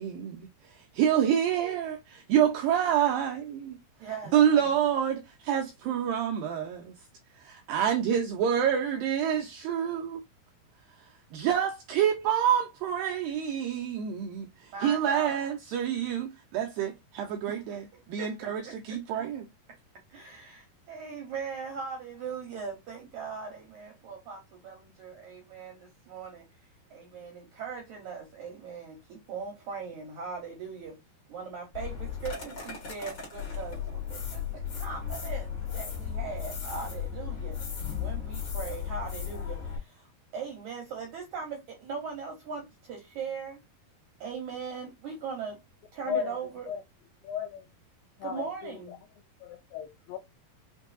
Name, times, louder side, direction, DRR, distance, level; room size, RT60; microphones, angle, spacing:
voice 1, 0.0-3.8 4.3-6.9 7.4-10.2 11.3-19.5, right 9 dB, 90° right, 2.0 m, -27 dB
voice 2, 4.0-4.7 14.7-15.4 17.5-19.0 19.7-19.8 20.1-26.5 26.9-31.0 31.3-37.6 38.0-43.6 44.2-45.6 45.9-46.7 48.2-48.9, right 5 dB, 75° right, 1.8 m, -40 dB
sound 1, 31.7-39.8, left 8 dB, 40° left, 1.8 m, -35 dB
voice 3, 47.2-47.7 48.2-49.0 49.4-50.2, left 8 dB, 80° left, 2.1 m, -35 dB
6.0 x 2.7 x 2.4 m
omnidirectional pair, 4.6 m